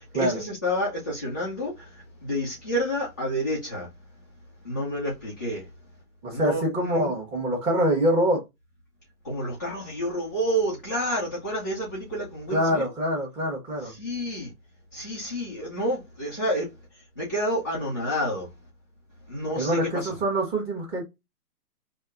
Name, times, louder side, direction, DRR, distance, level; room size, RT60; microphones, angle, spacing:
voice 1, 0.0-4.2 4.6-5.7 6.3-7.1 9.2-12.8 13.8-14.5 14.9-18.6 19.3-20.2, equal, 15° left, 0.4 m, -29 dB
voice 2, 6.2-8.4 12.5-13.9 19.6-21.0, right 1 dB, 10° right, 1.1 m, -25 dB
5.3 x 2.7 x 2.4 m
hypercardioid pair, 140°, 47 cm